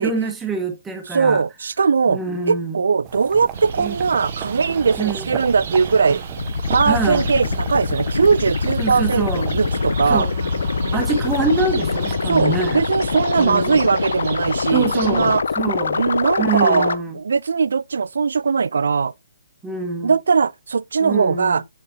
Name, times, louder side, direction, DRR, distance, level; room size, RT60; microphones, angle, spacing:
voice 1, 0.0-1.4 2.1-2.8 3.8-3.9 5.0-5.2 6.9-7.3 8.8-9.4 10.1-10.3 10.9-12.8 13.4-13.8 14.7-16.0 16.4-17.2 19.6-20.1 21.0-21.6, right 4 dB, 10° right, 1.3 m, -25 dB
voice 2, 1.1-2.2 2.5-6.2 6.7-10.3 12.3-15.4 15.9-19.1 20.0-21.6, right 5 dB, 75° right, 0.3 m, -20 dB
sound 1, 3.0-12.1, right 9 dB, 25° right, 0.8 m, -36 dB
sound 2, 3.5-15.4, right 5 dB, 55° right, 0.9 m, -32 dB
sound 3, 6.4-17.0, left 5 dB, 75° left, 0.4 m, -24 dB
7.0 x 4.9 x 2.8 m
hypercardioid pair, 150°, 0 cm